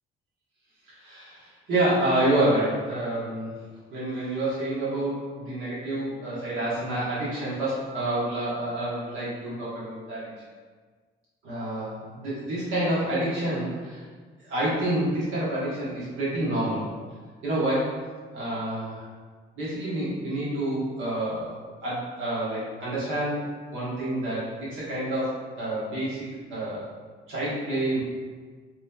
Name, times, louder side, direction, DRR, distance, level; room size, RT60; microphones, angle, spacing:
voice 1, 0.9-3.5 3.9-10.3 11.4-14.0 14.4-16.9 17.4-17.9 18.3-19.0 19.6-23.4 23.7-26.8 27.3-28.0, right 1 dB, 85° right, -9 dB, 1.2 m, -28 dB
3.9 x 3.1 x 2.3 m, 1.5 s
cardioid pair, 90°, 20 cm